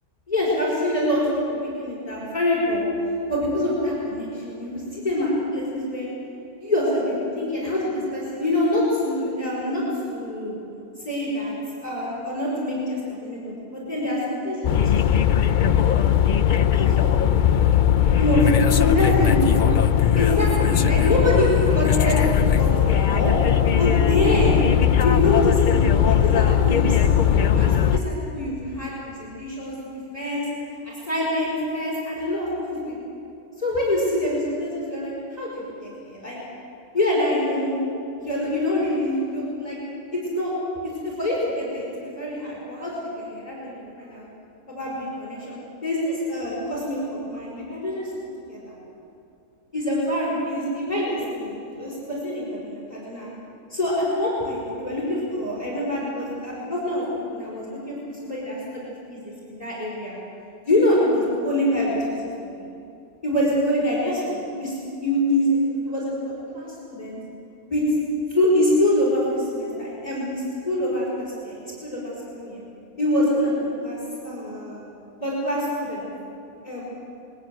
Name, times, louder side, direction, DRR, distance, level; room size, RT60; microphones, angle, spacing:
voice 1, 0.3-1.2 1.5-2.9 3.3-6.1 6.6-10.6 11.0-11.5 11.8-15.8 16.7-17.6 18.2-18.4 18.7-19.5 20.1-22.2 22.6-22.7 23.1-23.3 23.8-24.6 25.0-29.8 30.1-30.5 30.8-33.0 33.6-36.4 36.9-37.8 38.2-39.8 40.1-40.5 40.8-44.2 44.7-45.6 45.8-48.1 48.5-48.7 49.7-53.3 53.7-60.2 60.7-62.7 63.2-67.2 67.7-67.8 68.3-72.6 73.0-74.0 74.2-74.8 75.2-76.1 76.6-76.8, left 1 dB, 25° left, -5 dB, 5.4 m, -25 dB
sound 1, 14.6-28.0, left 9 dB, 65° left, 0.4 m, -19 dB
22.0 x 16.0 x 9.1 m, 2.6 s
omnidirectional pair, 1.6 m